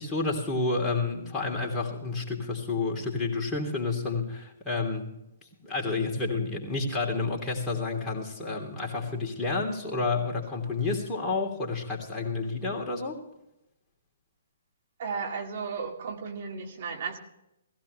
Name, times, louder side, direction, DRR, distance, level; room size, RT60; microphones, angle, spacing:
voice 1, 0.0-5.1 5.6-13.2, left 3 dB, 15° left, -2 dB, 3.0 m, -30 dB
voice 2, 15.0-17.2, right 5 dB, 50° right, 2 dB, 2.2 m, -34 dB
18.0 x 16.0 x 3.3 m, 0.86 s
figure-of-eight pair, 125°, 0 cm